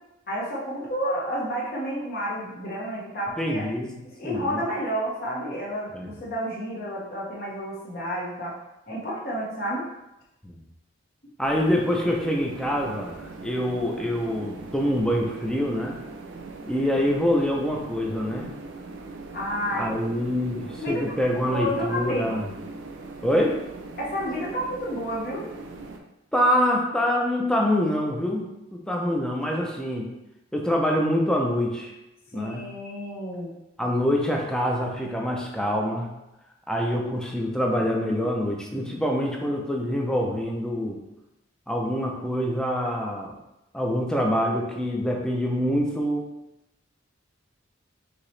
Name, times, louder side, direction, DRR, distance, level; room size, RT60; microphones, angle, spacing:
voice 1, 0.3-3.7 4.2-8.5 8.9-9.9 19.3-19.9 20.7-21.1 21.5-22.4 24.0-25.5 32.3-33.5, equal, 50° left, -5 dB, 1.1 m, -30 dB
voice 2, 3.4-4.0 4.2-4.6 5.9-6.1 10.4-10.6 11.4-16.0 16.7-18.5 19.7-22.5 23.2-23.5 26.3-30.1 30.5-31.9 32.3-32.7 33.8-36.1 36.7-41.0 41.7-43.3 43.7-46.3, equal, 5° left, -1 dB, 0.5 m, -25 dB
sound 1, 11.4-26.0, right 3 dB, 70° right, 0.5 m, -41 dB
4.8 x 2.9 x 3.2 m, 0.91 s
head